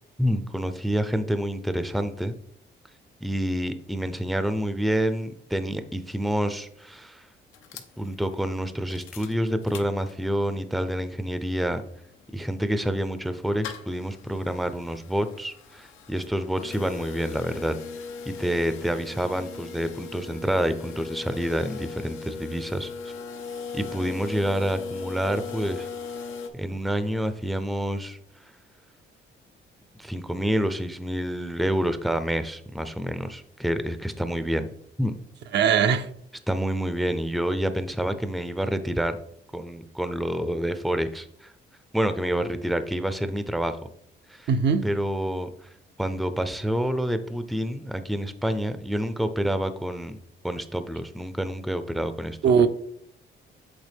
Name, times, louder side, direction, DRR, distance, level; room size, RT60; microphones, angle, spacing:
voice 1, 0.2-2.4 3.2-7.3 8.0-11.8 12.3-17.8 18.3-23.1 23.7-25.9 26.5-28.2 30.0-34.7 35.0-35.1 36.5-39.2 39.5-41.5 41.9-43.8 44.3-44.5 44.8-45.7 46.0-50.2 50.4-52.7, equal, ahead, 0.5 m, -28 dB
sound 1, 7.5-10.5 10.9-11.0 11.2-26.5, left 5 dB, 90° left, 0.7 m, -39 dB
voice 2, 35.5-36.1 44.5-44.9 52.4-52.7, right 7 dB, 60° right, 0.5 m, -20 dB
8.2 x 3.4 x 3.4 m
cardioid pair, 90°, 20 cm